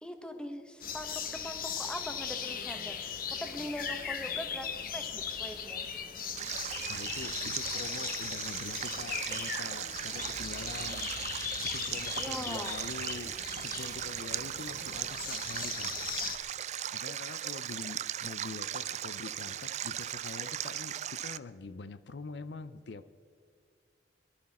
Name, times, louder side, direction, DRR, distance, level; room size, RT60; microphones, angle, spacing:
voice 1, 0.0-6.0 12.2-12.8, equal, 5° left, 6 dB, 1.1 m, -42 dB
sound 1, 0.8-16.4, left 7 dB, 50° left, 0.9 m, -38 dB
Stream, 6.4-21.4, right 11 dB, 40° right, 0.3 m, -38 dB
voice 2, 6.9-15.9 16.9-23.1, left 4 dB, 75° left, 14 dB, 0.5 m, -45 dB
sound 2, 10.1-16.2, equal, 20° right, 1.1 m, -54 dB
22.5 x 12.0 x 4.2 m, 2.3 s
head